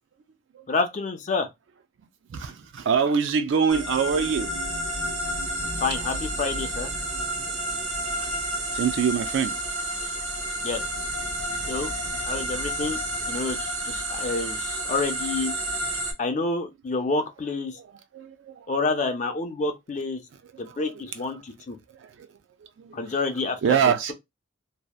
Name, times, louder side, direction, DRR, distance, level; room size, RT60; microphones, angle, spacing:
voice 1, 0.7-1.5 5.8-6.9 10.6-10.8 11.7-11.9 12.2-13.0 13.3-15.5 16.2-17.8 18.7-20.2 20.6-21.8 22.9-23.6, left 3 dB, 35° left, 0.4 m, -28 dB
voice 2, 2.3-4.5 8.2-8.3 8.7-9.6 17.7-18.7 19.0-19.1 20.4-21.4 21.9-22.4 22.8-23.2 23.6-24.1, right 6 dB, 65° right, 0.3 m, -26 dB
sound 1, 3.7-16.1, right 1 dB, 90° right, 1.0 m, -30 dB
2.7 x 2.1 x 2.3 m
head